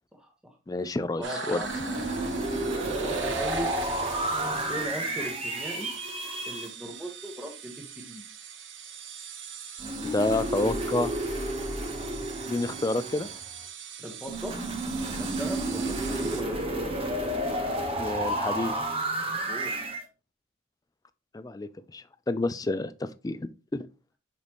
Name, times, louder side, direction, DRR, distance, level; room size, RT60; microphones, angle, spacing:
voice 1, 0.1-0.5 1.2-2.5 3.0-3.7 4.7-5.9 6.5-8.2 14.0-14.5 15.0-16.9 19.5-19.7, equal, 5° right, 1.3 m, -38 dB
voice 2, 0.7-1.6 10.0-11.2 12.5-13.3 18.0-18.7 21.3-23.9, left 2 dB, 20° left, 0.3 m, -29 dB
sound 1, 1.2-16.4, right 6 dB, 65° right, 1.1 m, -41 dB
sound 2, 1.6-6.7 9.8-13.6 14.3-20.0, right 1 dB, 25° right, 1.1 m, -31 dB
6.6 x 5.1 x 3.0 m
head